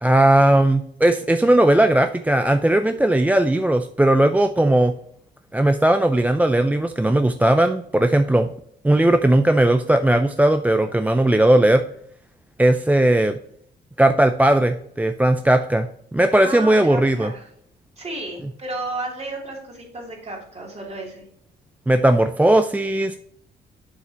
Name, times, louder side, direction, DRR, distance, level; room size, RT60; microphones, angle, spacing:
voice 1, 0.0-4.9 5.5-8.5 8.8-11.8 12.6-13.4 14.0-17.3 21.9-23.2, right 1 dB, 10° right, 8 dB, 0.4 m, -17 dB
voice 2, 16.3-17.5 18.0-21.3, right 2 dB, 35° right, -1 dB, 3.0 m, -33 dB
7.4 x 5.8 x 2.9 m, 0.69 s
cardioid pair, 90°, 20 cm